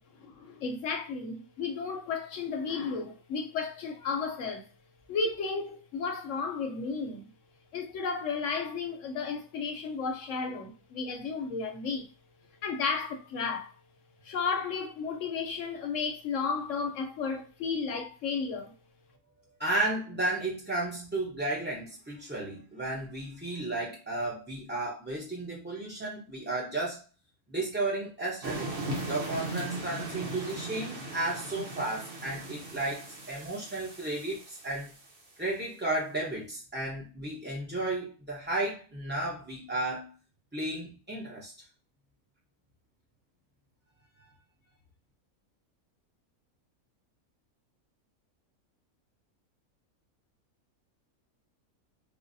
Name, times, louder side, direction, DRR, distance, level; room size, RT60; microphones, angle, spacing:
voice 1, 0.2-4.7 5.1-7.3 7.7-12.1 12.6-13.8 14.2-18.7, left 5 dB, 65° left, 0.8 m, -33 dB
voice 2, 19.6-27.0 27.5-28.7 29.1-34.9 35.4-40.1 40.5-41.5, right 2 dB, 20° right, 0.3 m, -33 dB
sound 1, 28.4-35.1, right 2 dB, 50° right, 1.1 m, -38 dB
5.0 x 2.0 x 2.6 m
omnidirectional pair, 1.6 m